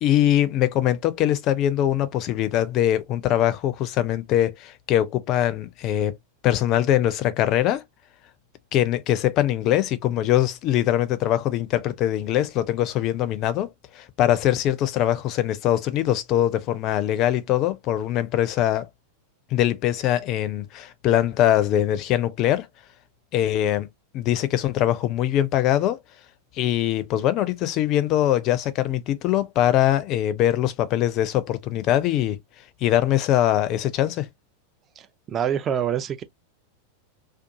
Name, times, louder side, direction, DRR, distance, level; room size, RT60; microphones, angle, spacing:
voice 1, 0.0-6.2 6.4-7.8 8.7-13.7 13.9-18.9 19.5-22.7 23.3-23.9 24.1-26.0 26.6-32.4 32.8-34.3, left 12 dB, 40° left, 0.4 m, -22 dB
voice 2, 35.0-36.2, right 9 dB, 25° right, 0.4 m, -26 dB
2.5 x 2.3 x 2.6 m
figure-of-eight pair, 90°, 0 cm